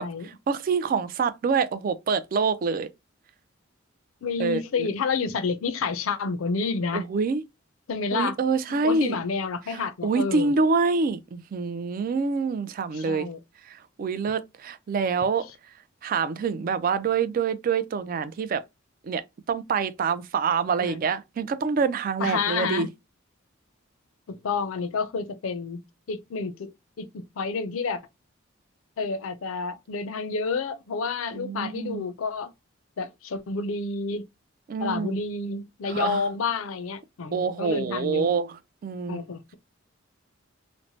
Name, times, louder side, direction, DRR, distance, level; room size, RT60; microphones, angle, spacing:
voice 1, 0.5-2.9 4.4-4.9 6.9-7.4 8.1-9.2 9.7-13.3 13.7-15.5 16.0-18.6 19.0-19.2 19.5-22.9 31.3-32.1 34.7-35.2 35.9-36.2 37.3-38.6 38.8-39.2, right 5 dB, 45° right, 0.3 m, -26 dB
voice 2, 4.2-7.0 7.9-8.4 8.7-10.5 12.9-13.4 20.8-21.0 22.2-22.9 24.3-25.8 26.1-26.7 27.0-28.0 29.0-32.5 33.0-34.3 34.8-38.3 39.1-39.5, left 4 dB, 85° left, 0.5 m, -29 dB
3.1 x 2.0 x 2.7 m
head